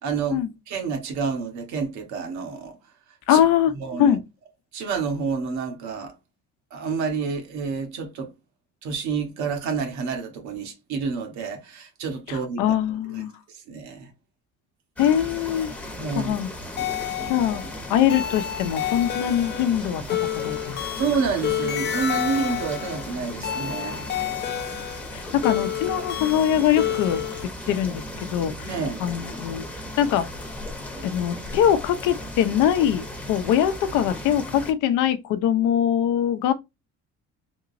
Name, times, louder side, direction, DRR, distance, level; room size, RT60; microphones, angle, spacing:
voice 1, 0.0-2.8 3.3-3.4 3.7-4.2 4.7-6.1 6.7-8.3 8.8-12.6 13.1-13.2 13.5-14.1 16.0-16.3 21.0-24.0 28.7-29.0, right 5 dB, 65° right, 1.2 m, -29 dB
voice 2, 3.3-3.7 4.0-4.2 12.3-13.3 15.0-15.7 16.2-16.5 17.3-17.6 17.9-20.8 25.1-27.2 27.7-28.0 28.3-28.7 29.0-29.6 30.0-30.3 31.0-36.5, left 10 dB, 75° left, 0.7 m, -22 dB
sound 1, 15.0-34.7, left 1 dB, 5° left, 0.8 m, -36 dB
sound 2, 16.8-27.4, left 10 dB, 35° left, 0.5 m, -30 dB
3.7 x 2.9 x 2.5 m
cardioid pair, 155°, 31 cm